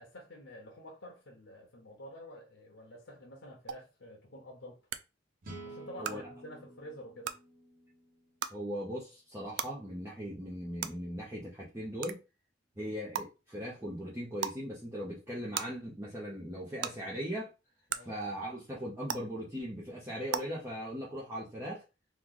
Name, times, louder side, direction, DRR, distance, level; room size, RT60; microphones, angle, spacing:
voice 1, 0.0-4.8 5.6-7.4 12.7-12.9 17.9-18.1, equal, 75° left, 0.8 m, -49 dB
sound 1, 3.7-3.8 4.9-5.0 6.0-6.1 7.2-7.3 8.4-8.5 9.6-9.7 10.8-10.9 12.0-12.1 13.1-13.2 14.4-14.6 15.5-15.6 16.8-16.9 17.9-18.0 19.1-19.2 20.3-20.4, right 9 dB, 80° right, 0.3 m, -34 dB
sound 2, 5.4-8.7, right 2 dB, 50° right, 1.0 m, -50 dB
voice 2, 8.5-12.2 12.8-17.5 18.0-21.8, equal, 15° right, 0.8 m, -39 dB
3.0 x 2.4 x 3.7 m
head